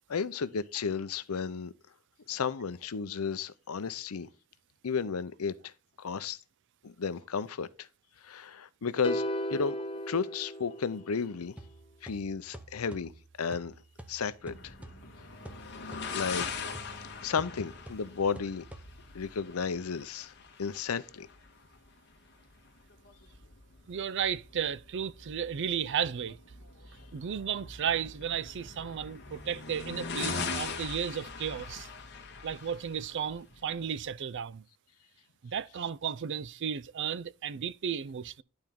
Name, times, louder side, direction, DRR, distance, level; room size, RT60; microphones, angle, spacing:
voice 1, 0.1-1.7 2.3-4.3 4.8-5.7 6.0-6.4 6.8-7.9 8.2-9.2 9.5-9.7 10.1-11.5 12.0-13.1 13.4-13.7 14.1-14.7 15.9-16.5 17.2-18.7 19.1-20.3 20.6-21.3, left 5 dB, 85° left, 0.6 m, -33 dB
sound 1, 9.0-11.4, equal, 25° left, 0.6 m, -35 dB
sound 2, 11.6-19.3, right 1 dB, 5° right, 0.8 m, -50 dB
sound 3, 14.4-34.1, left 4 dB, 55° left, 1.4 m, -42 dB
voice 2, 23.9-26.4 27.1-31.9 32.4-34.6 35.4-38.4, right 8 dB, 55° right, 0.4 m, -34 dB
11.5 x 4.4 x 3.5 m
head